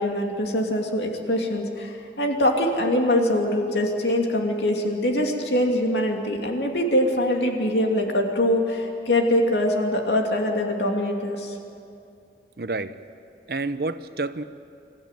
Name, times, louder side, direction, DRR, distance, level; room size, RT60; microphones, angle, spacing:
voice 1, 0.0-11.6, left 1 dB, 75° left, 2 dB, 2.8 m, -23 dB
voice 2, 12.6-12.9 13.5-14.4, right 3 dB, 60° right, 12 dB, 0.8 m, -29 dB
27.0 x 14.0 x 9.3 m, 2.6 s
head